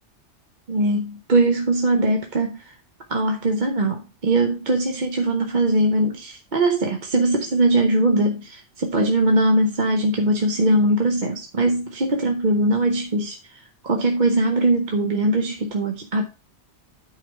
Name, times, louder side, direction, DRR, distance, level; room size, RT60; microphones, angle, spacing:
voice 1, 0.7-2.8 3.1-16.2, right 1 dB, 45° right, 0.9 m, -21 dB
8.9 x 4.9 x 4.5 m
omnidirectional pair, 1.2 m